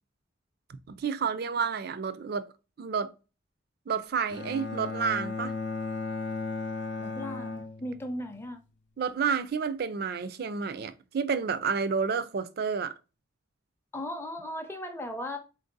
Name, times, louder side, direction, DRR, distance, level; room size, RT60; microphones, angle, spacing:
voice 1, 0.9-2.5 2.8-3.1 3.9-5.5 9.0-12.9, right 6 dB, 50° right, 0.4 m, -30 dB
Bowed string instrument, 4.3-8.4, left 3 dB, 60° left, 0.6 m, -35 dB
voice 2, 7.0-8.6 13.9-15.4, left 1 dB, 10° left, 0.5 m, -37 dB
4.1 x 2.6 x 3.9 m
head